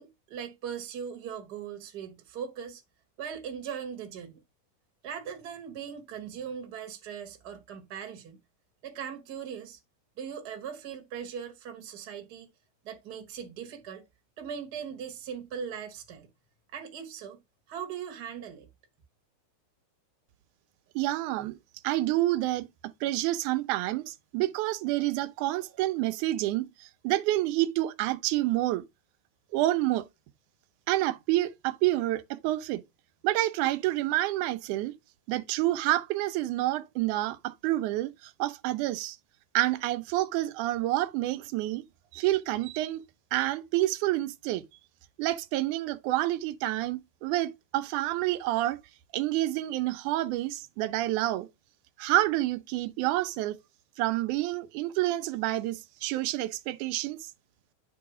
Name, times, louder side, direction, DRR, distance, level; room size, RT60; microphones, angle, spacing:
voice 1, 0.0-2.8 3.2-4.4 5.0-8.4 8.8-9.8 10.2-12.5 12.8-14.0 14.4-16.3 16.7-17.4 17.7-18.7, right 7 dB, 55° right, 1.2 m, -39 dB
voice 2, 21.0-21.6 21.8-22.7 23.0-28.8 29.5-30.1 30.9-32.8 33.2-34.9 35.3-39.2 39.5-41.8 42.1-43.0 43.3-44.6 45.2-48.8 49.1-51.5 52.0-53.6 54.0-57.3, right 16 dB, 85° right, 2.1 m, -28 dB
9.0 x 3.9 x 4.9 m
omnidirectional pair, 3.5 m